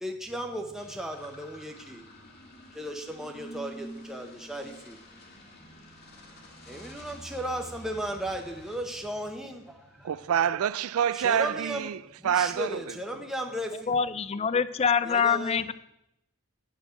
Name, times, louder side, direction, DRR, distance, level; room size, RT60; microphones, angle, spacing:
voice 1, 0.0-2.0 2.7-5.0 6.7-10.1 11.1-11.9 12.2-14.0 15.0-15.6, right 1 dB, ahead, 0.8 m, -35 dB
sound 1, 0.8-10.3, equal, 50° left, 1.9 m, -48 dB
voice 2, 10.0-13.0, right 9 dB, 85° right, 0.4 m, -27 dB
voice 3, 13.9-15.7, left 6 dB, 30° left, 0.3 m, -25 dB
8.9 x 6.0 x 8.2 m
head